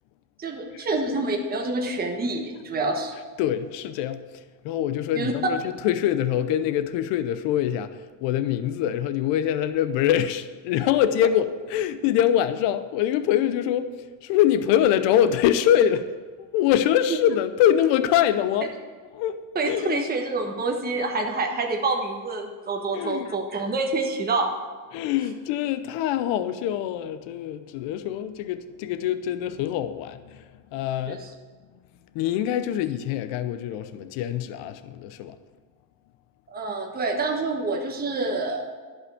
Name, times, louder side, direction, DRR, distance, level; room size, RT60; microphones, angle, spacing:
voice 1, 0.4-3.1 5.1-5.3 17.1-17.2 19.5-24.5 31.1-31.2 36.5-38.6, right 3 dB, 20° right, 1.3 m, -27 dB
voice 2, 3.4-4.2 4.6-13.9 14.2-16.1 16.4-18.7 19.1-20.0 22.9-23.3 24.9-30.4 30.7-31.3 32.1-35.4, left 10 dB, 70° left, 0.8 m, -24 dB
11.5 x 5.5 x 7.8 m
cardioid pair, 115°, 45 cm